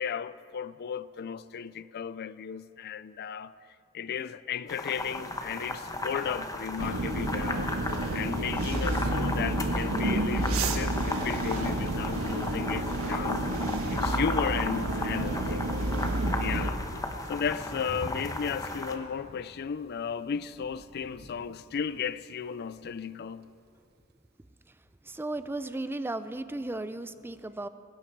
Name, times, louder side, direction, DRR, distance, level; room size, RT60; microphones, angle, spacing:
voice 1, 0.0-3.5 3.9-7.7 8.1-13.4 13.9-16.1 16.4-16.8 17.3-23.5, left 7 dB, 50° left, 0.4 m, -35 dB
sound 1, 4.7-18.9, left 2 dB, 15° left, 1.1 m, -35 dB
sound 2, 6.8-16.7, right 1 dB, 80° right, 1.3 m, -30 dB
Thunder, 17.1-23.9, right 1 dB, 50° right, 1.0 m, -48 dB
voice 2, 25.1-27.7, right 2 dB, 10° right, 0.4 m, -35 dB
19.5 x 16.0 x 4.6 m
head